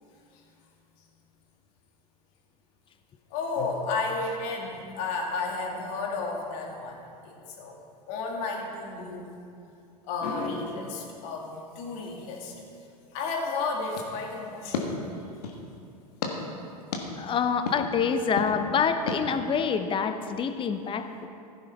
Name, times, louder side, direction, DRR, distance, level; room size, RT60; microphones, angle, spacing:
voice 1, 3.3-7.8 8.1-9.3 10.0-12.5 13.1-15.0, left 3 dB, 55° left, 0 dB, 2.4 m, -32 dB
sound 1, 13.9-15.7 16.2-16.3 16.9-17.0 17.7-17.8 18.4-18.5 19.1-19.2, left 5 dB, 75° left, 1.6 m, -33 dB
voice 2, 17.2-21.3, left 6 dB, 25° left, 9 dB, 0.8 m, -27 dB
15.5 x 10.0 x 3.6 m, 2.5 s
hypercardioid pair, 95°, 20 cm